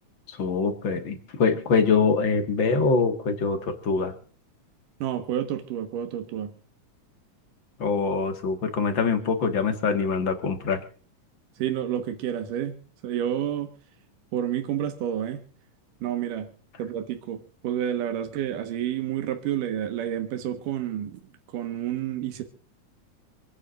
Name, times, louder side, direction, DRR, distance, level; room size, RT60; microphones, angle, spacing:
voice 1, 0.3-4.1 7.8-10.8, left 5 dB, 45° left, 6 dB, 2.0 m, -24 dB
voice 2, 5.0-6.5 11.6-12.8 13.0-13.7 14.3-15.4 16.0-16.5 16.8-21.2 21.5-22.4, right 10 dB, 85° right, 6 dB, 3.0 m, -29 dB
27.0 x 9.7 x 2.5 m, 0.43 s
omnidirectional pair, 3.6 m